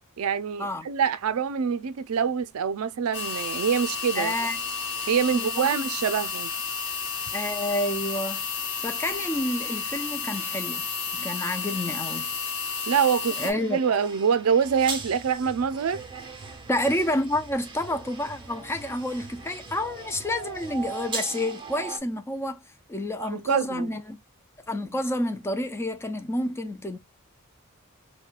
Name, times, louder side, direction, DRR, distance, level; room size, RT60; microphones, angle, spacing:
voice 1, 0.2-4.3 5.1-6.5 12.9-16.0 23.2-23.9, right 7 dB, 70° right, 0.4 m, -25 dB
sound 1, 3.1-13.5, left 5 dB, 55° left, 0.9 m, -32 dB
voice 2, 4.2-4.6 5.3-5.8 7.3-8.4 8.8-10.9 11.1-12.3 13.4-13.8 16.7-22.6 22.9-24.2 24.7-27.0, left 1 dB, 10° left, 0.3 m, -29 dB
sound 2, 13.4-22.0, right 4 dB, 20° right, 0.8 m, -39 dB
4.3 x 2.2 x 2.3 m
head